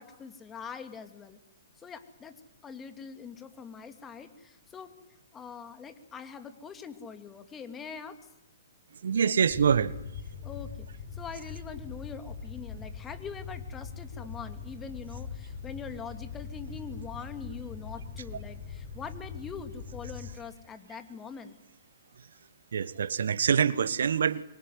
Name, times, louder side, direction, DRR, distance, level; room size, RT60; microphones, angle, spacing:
voice 1, 0.0-1.4 1.8-2.3 2.6-4.9 5.3-8.2 10.4-10.9 11.1-21.6, left 6 dB, 15° left, 9 dB, 2.7 m, -43 dB
voice 2, 9.0-9.9 22.7-24.4, right 7 dB, 70° right, 18 dB, 1.4 m, -25 dB
Fire, 9.5-20.3, left 5 dB, 50° left, 6.2 m, -42 dB
25.5 x 24.0 x 9.6 m, 0.85 s
figure-of-eight pair, 125°, 0 cm